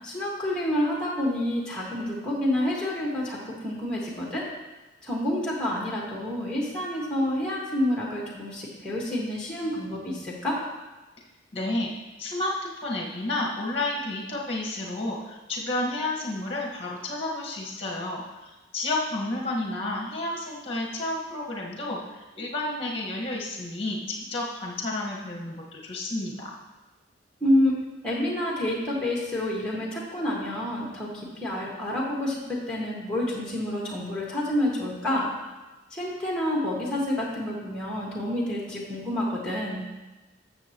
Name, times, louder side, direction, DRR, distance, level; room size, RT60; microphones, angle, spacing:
voice 1, 0.0-4.4 5.0-10.6 27.4-27.7 28.0-31.1 31.4-35.3 35.9-39.8, left 1 dB, 5° left, -4 dB, 1.7 m, -28 dB
voice 2, 11.5-11.9 12.2-12.5 12.8-18.2 18.7-26.5, left 2 dB, 30° left, -3 dB, 1.5 m, -31 dB
13.5 x 6.9 x 3.0 m, 1.1 s
head